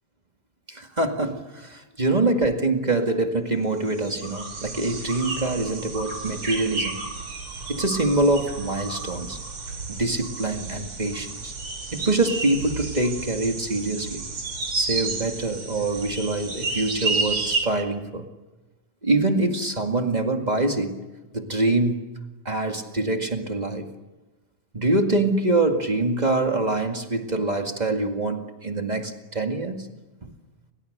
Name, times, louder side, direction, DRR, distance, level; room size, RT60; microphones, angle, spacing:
voice 1, 0.7-7.0 7.7-9.4 9.9-11.5 11.9-14.2 14.7-18.3 19.0-21.0 21.3-22.0 22.4-23.9 24.7-29.9 30.2-30.3, right 2 dB, 20° right, 4 dB, 1.4 m, -25 dB
Jungle ambience. Nagarhole Wildlife Sanctuary., 3.8-17.6, right 3 dB, 40° right, 4.6 m, -31 dB
30.0 x 27.0 x 6.7 m, 1.1 s
omnidirectional pair, 3.9 m